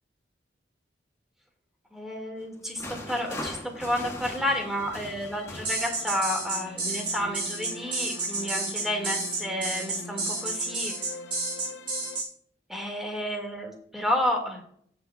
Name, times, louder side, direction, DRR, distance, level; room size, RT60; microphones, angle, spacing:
voice 1, 1.9-10.9 12.7-14.6, left 1 dB, ahead, 1 dB, 1.8 m, -31 dB
sound 1, 2.4-6.4 7.1-7.4, left 1 dB, 15° left, 1.2 m, -40 dB
sound 2, 4.4-12.2, left 3 dB, 80° left, 0.7 m, -44 dB
On Rd bruce Hats, 5.6-12.3, right 3 dB, 30° right, 2.1 m, -30 dB
16.0 x 6.6 x 2.2 m, 0.64 s
head